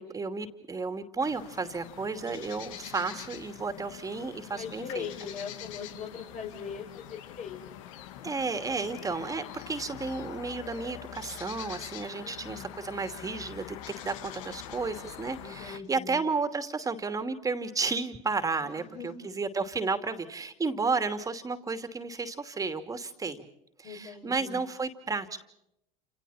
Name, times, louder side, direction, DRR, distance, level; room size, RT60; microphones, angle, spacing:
voice 1, 0.0-5.1 8.2-13.8 14.0-23.4 23.8-25.4, right 4 dB, 20° right, 8 dB, 2.6 m, -32 dB
sound 1, 1.2-15.8, left 11 dB, 85° left, 1.6 m, -44 dB
voice 2, 4.5-7.9 12.2-12.8 15.4-16.2 18.6-19.3 23.8-24.7, left 6 dB, 45° left, 0 dB, 5.1 m, -41 dB
29.0 x 28.0 x 4.3 m, 0.80 s
supercardioid pair, 105°, 17 cm